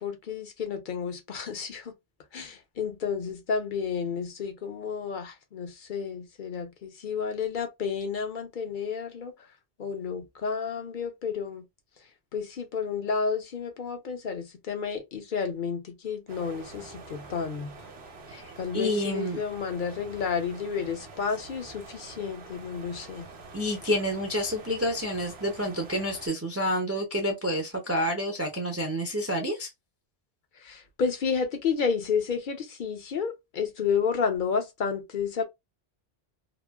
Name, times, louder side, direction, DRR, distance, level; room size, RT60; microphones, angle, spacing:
voice 1, 0.0-1.9 2.3-9.3 9.8-11.6 12.3-17.7 18.6-23.2 30.6-35.4, left 6 dB, 55° left, 0.8 m, -31 dB
sound 1, 16.3-26.3, right 3 dB, 75° right, 1.0 m, -46 dB
voice 2, 18.3-19.4 23.5-29.7, equal, 20° right, 0.5 m, -29 dB
3.0 x 2.5 x 2.3 m
omnidirectional pair, 1.1 m